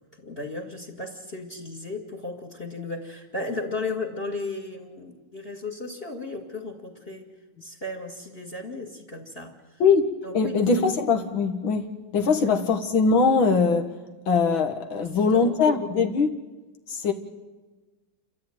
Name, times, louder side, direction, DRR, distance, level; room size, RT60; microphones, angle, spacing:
voice 1, 0.2-7.3 7.6-9.5 10.2-10.8 15.0-15.8, left 3 dB, 25° left, 4 dB, 2.1 m, -35 dB
voice 2, 9.8-11.9 12.1-13.9 14.3-16.4 16.9-17.1, left 4 dB, 65° left, 5 dB, 2.1 m, -22 dB
28.5 x 13.5 x 9.2 m, 1.2 s
omnidirectional pair, 2.4 m